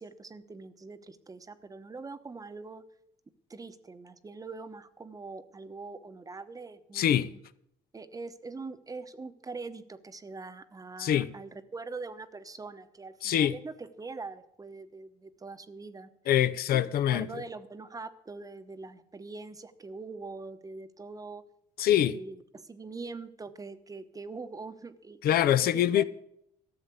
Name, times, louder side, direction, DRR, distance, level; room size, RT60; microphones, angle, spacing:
voice 1, 0.0-2.8 3.5-7.4 7.9-16.1 16.7-16.8 17.1-21.4 21.9-26.0, right 3 dB, 20° right, 1.0 m, -43 dB
voice 2, 6.9-7.3 11.0-11.3 13.2-13.5 16.3-17.3 21.8-22.1 25.2-26.0, left 11 dB, 65° left, 0.7 m, -24 dB
13.5 x 7.3 x 8.1 m
cardioid pair, 110°, 17 cm